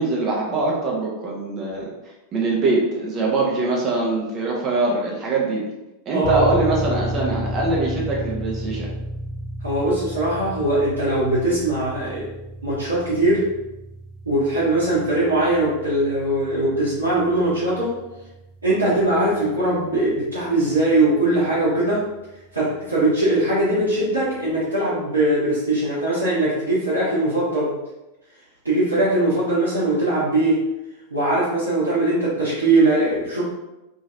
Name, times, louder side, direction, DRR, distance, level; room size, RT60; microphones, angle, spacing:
voice 1, 0.0-1.9 2.3-5.7 6.1-8.9, right 3 dB, 30° right, -3 dB, 0.7 m, -23 dB
voice 2, 6.1-6.7 9.6-12.2 12.6-13.4 14.2-17.9 18.6-22.0 22.5-27.8 28.6-30.6 31.1-33.4, right 2 dB, 80° right, -10 dB, 0.9 m, -21 dB
sound 1, 6.2-20.6, equal, 40° left, 0.8 m, -33 dB
3.0 x 2.8 x 2.5 m, 0.97 s
figure-of-eight pair, 90°, 0 cm